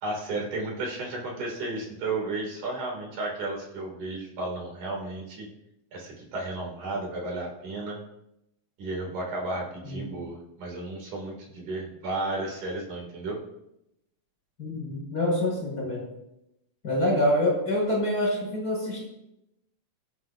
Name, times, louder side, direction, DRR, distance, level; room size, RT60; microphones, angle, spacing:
voice 1, 0.0-5.5 5.9-8.0 8.8-13.4, right 2 dB, 70° right, -1 dB, 4.4 m, -33 dB
voice 2, 14.6-16.1 16.8-19.0, left 1 dB, 30° left, -2 dB, 6.7 m, -26 dB
24.5 x 9.6 x 2.8 m, 0.85 s
omnidirectional pair, 3.7 m